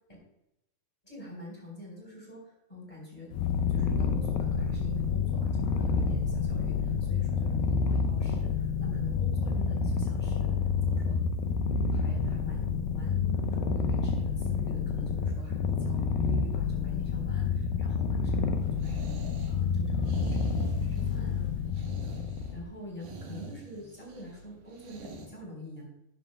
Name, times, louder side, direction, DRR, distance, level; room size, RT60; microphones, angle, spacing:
voice 1, 1.0-3.3 3.7-10.5 10.8-11.2 11.9-19.1 19.5-20.3 20.8-21.5 21.8-22.1 22.5-25.8, left 1 dB, 10° left, -2 dB, 3.5 m, -45 dB
Purr, 3.3-22.6, left 5 dB, 80° left, 2.7 m, -29 dB
sound 1, 18.6-25.3, right 2 dB, 70° right, 3.0 m, -45 dB
11.0 x 11.0 x 2.2 m, 0.83 s
omnidirectional pair, 4.3 m